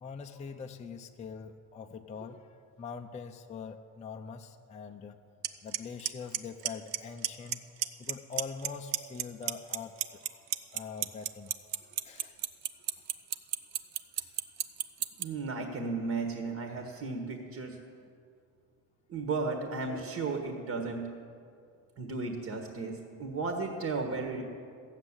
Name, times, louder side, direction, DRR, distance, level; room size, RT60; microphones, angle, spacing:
voice 1, 0.0-2.5 2.8-5.2 5.6-7.6 8.0-9.9 10.2-10.4 10.7-11.5 12.0-12.4 14.2-14.3, left 5 dB, 20° left, 4 dB, 0.6 m, -43 dB
Clock, 5.4-5.5 5.7-6.1 6.3-7.0 7.2-7.5 7.8-8.7 8.9-15.2, right 12 dB, 65° right, 0.8 m, -29 dB
voice 2, 15.2-17.8 19.1-21.1 22.0-24.4, right 3 dB, 40° right, 4 dB, 1.5 m, -34 dB
14.5 x 7.4 x 9.7 m, 2.3 s
cardioid pair, 140°, 36 cm